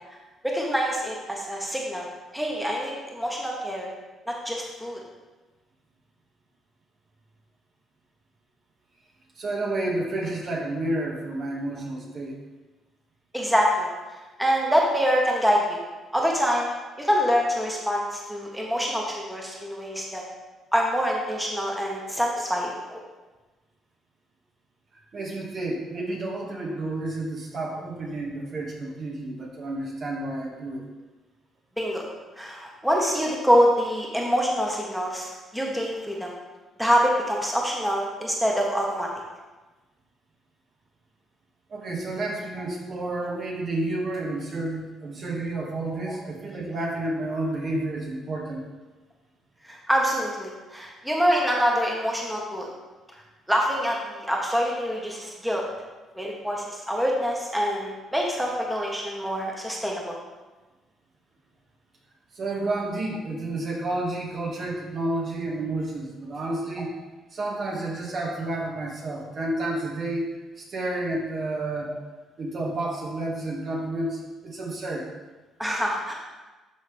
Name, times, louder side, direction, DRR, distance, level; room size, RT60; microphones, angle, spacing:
voice 1, 0.4-2.1 2.3-3.9 4.3-5.0 13.3-13.9 14.4-15.8 16.1-16.7 17.0-20.2 20.7-23.0 31.8-36.3 36.8-39.1 49.6-52.7 53.5-55.6 56.1-60.0 71.9-72.0 75.6-76.1, equal, 5° right, -2 dB, 1.5 m, -25 dB
voice 2, 9.4-12.4 25.1-30.8 41.7-48.6 62.3-67.0 67.3-71.9 72.4-75.1, right 2 dB, 55° right, -3 dB, 2.2 m, -30 dB
12.0 x 4.1 x 3.5 m, 1.2 s
supercardioid pair, 60°, 0 cm